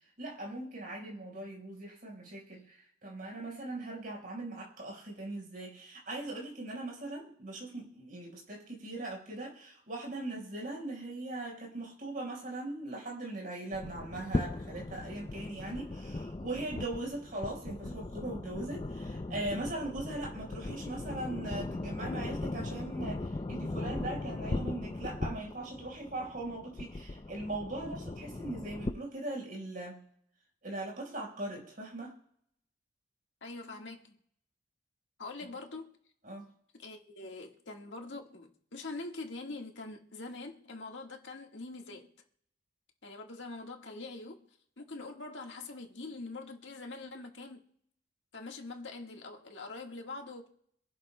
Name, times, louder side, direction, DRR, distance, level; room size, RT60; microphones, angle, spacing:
voice 1, 0.2-30.0 30.6-32.1 36.2-36.5, right 2 dB, 50° right, 4.6 m, -40 dB
sound 1, 13.7-28.9, left 2 dB, 25° left, 0.4 m, -38 dB
voice 2, 33.4-34.2 35.2-35.9 36.8-42.1 43.0-44.4 44.8-47.6 48.3-50.6, left 3 dB, 85° left, 1.6 m, -44 dB
26.0 x 11.5 x 2.2 m
head